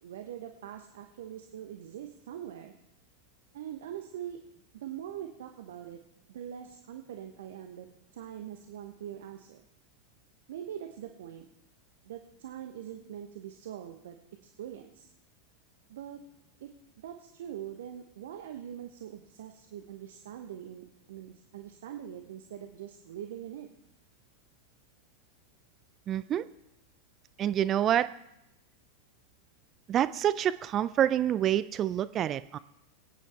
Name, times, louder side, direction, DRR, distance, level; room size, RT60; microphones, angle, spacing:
voice 1, 0.0-2.7 3.5-4.4 4.7-6.0 6.3-7.9 8.1-9.6 10.5-11.5 12.0-14.2 14.6-15.1 15.9-16.2 16.6-16.7 17.0-23.7, right 10 dB, 60° right, 5 dB, 1.0 m, -43 dB
voice 2, 26.1-26.5 27.4-28.1 29.9-32.6, right 11 dB, 30° right, 15 dB, 0.4 m, -27 dB
22.5 x 9.3 x 3.3 m, 0.85 s
figure-of-eight pair, 90°, 0 cm